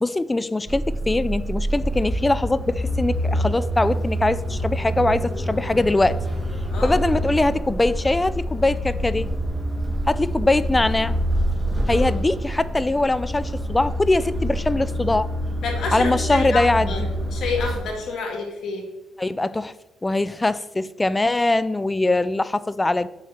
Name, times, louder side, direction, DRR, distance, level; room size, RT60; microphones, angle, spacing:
voice 1, 0.0-6.2 6.8-9.3 10.1-11.2 11.9-15.3 15.9-17.1 19.2-19.7 20.0-23.1, left 2 dB, 15° left, 16 dB, 0.4 m, -22 dB
sound 1, 0.7-17.8, equal, 10° right, 1.6 m, -26 dB
voice 2, 15.6-17.0 17.3-18.8, left 4 dB, 70° left, 0 dB, 2.0 m, -29 dB
6.7 x 4.3 x 6.4 m, 1.0 s
cardioid pair, 90°, 0 cm